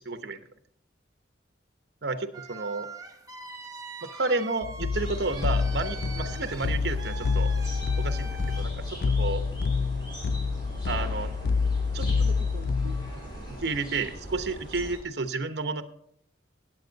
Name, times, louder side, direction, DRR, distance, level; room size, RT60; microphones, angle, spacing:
voice 1, 0.1-0.4 2.0-2.9 4.0-7.5 8.0-8.3 8.6-8.7 9.2-9.4 10.9-11.3 11.9-12.9 13.4-15.8, right 3 dB, 60° right, 10 dB, 0.9 m, -31 dB
Lemur sfx, 2.3-8.6, right 4 dB, 20° right, 1.0 m, -43 dB
sound 1, 4.6-13.1, left 5 dB, 55° left, 0.3 m, -28 dB
sound 2, 4.9-15.0, equal, 25° left, 3.9 m, -40 dB
17.5 x 7.8 x 4.0 m, 0.69 s
head